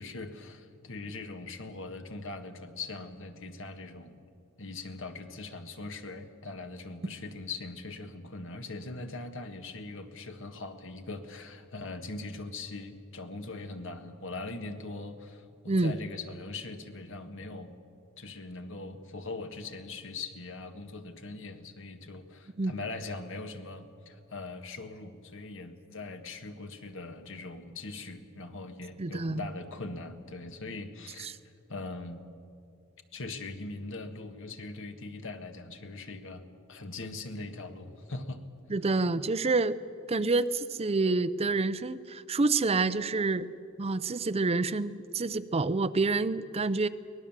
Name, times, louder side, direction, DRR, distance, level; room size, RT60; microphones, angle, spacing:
voice 1, 0.0-4.2 4.6-17.8 18.2-31.4 31.7-32.2 33.1-38.5, left 3 dB, 65° left, 7 dB, 1.7 m, -41 dB
voice 2, 29.0-29.5 31.2-31.3 38.7-39.8 40.1-43.5 43.8-46.9, right 3 dB, 30° right, 14 dB, 0.5 m, -28 dB
23.5 x 19.0 x 7.4 m, 2.4 s
head